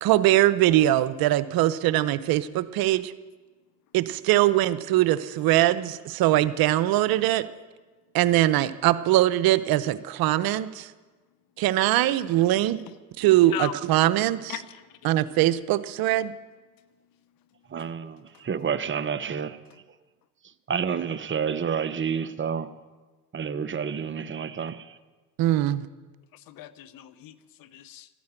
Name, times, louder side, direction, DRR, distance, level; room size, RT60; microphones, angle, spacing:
voice 1, 0.0-3.1 3.9-7.4 8.1-10.9 11.6-12.8 13.2-14.5 15.0-16.3 25.4-25.9, right 14 dB, 70° right, 0.8 m, -22 dB
voice 2, 17.7-19.6 20.7-22.7 23.3-25.0, right 7 dB, 30° right, 0.9 m, -29 dB
voice 3, 26.3-28.1, left 13 dB, 65° left, 0.9 m, -37 dB
13.0 x 10.5 x 8.9 m
supercardioid pair, 80°, 37 cm